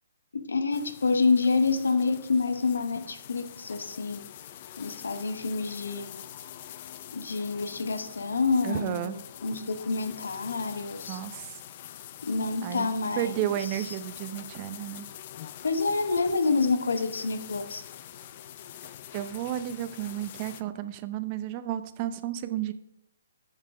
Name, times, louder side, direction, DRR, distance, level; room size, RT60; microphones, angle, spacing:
voice 1, 0.3-4.2 4.8-6.2 7.1-11.2 12.2-13.9 15.6-17.8, left 4 dB, 80° left, 8 dB, 1.0 m, -28 dB
sound 1, 0.7-20.6, left 11 dB, 40° left, 0.5 m, -45 dB
voice 2, 8.6-9.2 11.1-11.6 12.6-12.9 13.2-15.1 19.1-22.7, right 12 dB, 35° right, 12 dB, 0.6 m, -32 dB
7.4 x 6.5 x 4.9 m, 0.80 s
hypercardioid pair, 145°, 0 cm